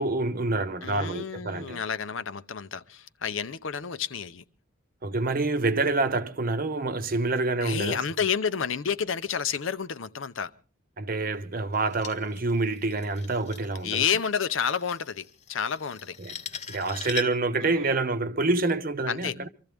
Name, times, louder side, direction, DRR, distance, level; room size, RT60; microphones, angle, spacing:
voice 1, 0.0-1.8 5.0-8.0 11.0-14.0 16.2-16.3 16.7-19.5, right 3 dB, 45° right, 0.8 m, -27 dB
voice 2, 0.8-4.4 7.6-10.5 13.8-16.2 17.6-17.9 19.1-19.4, left 7 dB, 70° left, 0.7 m, -30 dB
sound 1, 11.7-17.5, left 6 dB, 35° left, 0.8 m, -41 dB
24.5 x 14.0 x 3.5 m
head